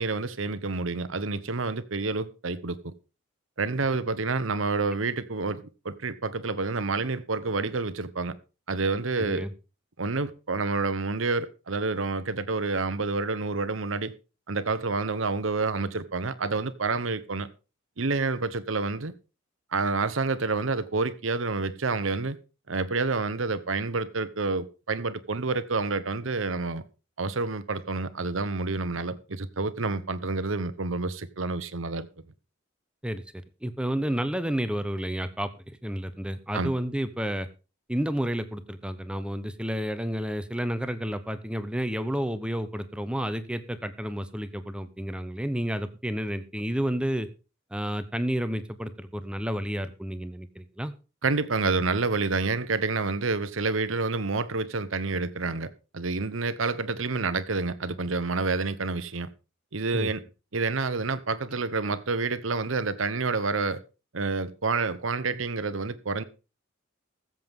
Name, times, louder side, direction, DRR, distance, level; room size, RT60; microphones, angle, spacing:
voice 1, 0.0-2.9 3.6-8.3 8.7-9.5 10.0-14.1 14.5-17.5 18.0-19.1 19.7-22.4 22.7-26.8 27.2-32.1 36.5-36.7 51.2-59.3 59.7-60.2 60.5-63.8 64.1-66.2, right 3 dB, 75° right, 1.0 m, -28 dB
voice 2, 9.2-9.5 33.0-33.2 33.6-37.5 37.9-47.3 47.7-50.9 59.9-60.1, equal, 5° right, 0.8 m, -30 dB
20.5 x 7.7 x 3.7 m
head